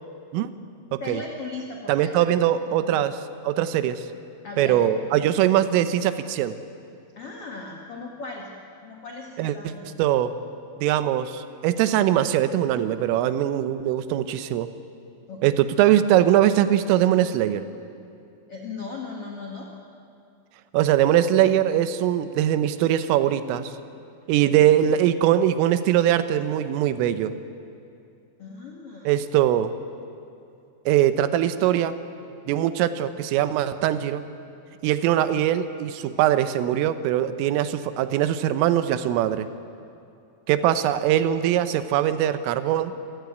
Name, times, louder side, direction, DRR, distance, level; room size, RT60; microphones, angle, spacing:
voice 1, 1.0-2.4 2.7-2.9 4.4-5.0 7.1-8.5 8.8-10.0 15.3-15.8 18.5-19.7 24.4-25.0 28.4-29.1, left 3 dB, 85° left, 0 dB, 1.3 m, -38 dB
voice 2, 1.9-3.2 3.4-4.0 4.6-6.6 9.4-9.6 10.0-10.4 10.8-14.7 15.4-17.7 20.7-23.7 24.3-27.4 29.1-29.7 30.9-32.0 32.5-34.2 34.8-39.5 40.5-42.9, right 11 dB, 85° right, 12 dB, 3.5 m, -21 dB
26.5 x 15.5 x 9.5 m, 2.6 s
omnidirectional pair, 5.7 m